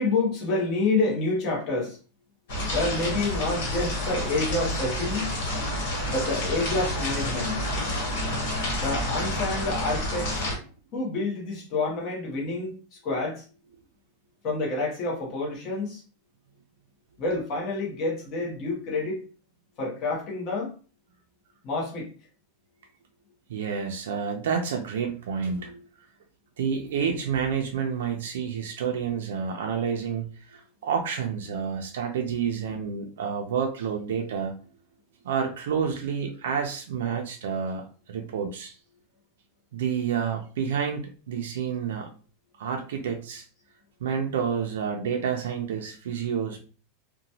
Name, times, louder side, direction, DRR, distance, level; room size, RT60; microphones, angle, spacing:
voice 1, 0.0-2.0 2.7-5.3 6.1-7.6 8.8-10.4 10.9-12.7 13.0-13.4 14.4-16.0 17.2-19.2 19.8-20.7 21.6-22.1, left 3 dB, 30° left, -2 dB, 0.9 m, -28 dB
sound 1, 2.5-10.5, left 1 dB, 65° left, 1.2 m, -29 dB
voice 2, 23.5-25.9 26.6-34.5 35.2-38.8 39.7-42.1 42.6-43.4 44.0-46.6, right 7 dB, 85° right, 2 dB, 0.4 m, -29 dB
2.9 x 2.2 x 2.7 m, 0.37 s
supercardioid pair, 170°, 0 cm